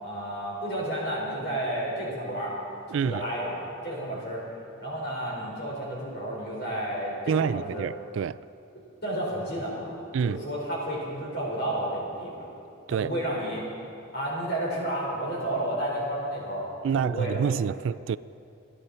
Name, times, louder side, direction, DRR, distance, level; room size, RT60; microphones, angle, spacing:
voice 1, 0.0-2.5 2.9-4.4 4.8-7.9 9.0-12.4 12.9-13.6 14.1-17.4, right 1 dB, 55° left, 4.9 m, -31 dB
voice 2, 2.9-3.2 7.3-8.4 10.1-10.4 12.9-13.1 16.8-18.2, right 7 dB, 70° right, 0.3 m, -27 dB
27.0 x 11.0 x 4.3 m
head